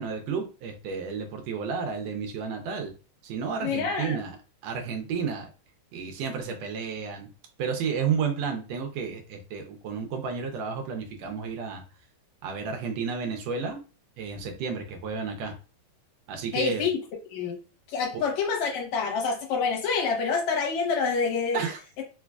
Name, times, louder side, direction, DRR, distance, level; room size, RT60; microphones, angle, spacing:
voice 1, 0.0-2.9 3.2-4.4 4.6-5.5 5.9-7.3 7.6-11.8 12.4-13.8 14.2-15.6 16.3-16.8 21.5-21.8, right 6 dB, 75° right, 1.6 m, -31 dB
voice 2, 3.6-4.2 16.5-17.0 17.3-17.6 17.9-21.6, left 5 dB, 75° left, 2.1 m, -27 dB
4.5 x 2.3 x 2.2 m
omnidirectional pair, 3.4 m